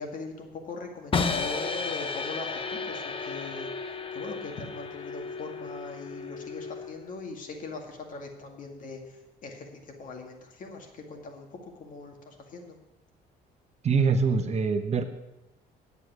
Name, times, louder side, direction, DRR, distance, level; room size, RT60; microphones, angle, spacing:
voice 1, 0.0-3.7 4.1-12.8, left 3 dB, 50° left, 3 dB, 2.1 m, -41 dB
sound 1, 1.1-7.1, left 4 dB, 30° left, 0.9 m, -33 dB
voice 2, 13.8-15.0, right 5 dB, 40° right, 7 dB, 1.0 m, -24 dB
10.0 x 8.2 x 6.1 m, 0.95 s
cardioid pair, 110°, 17 cm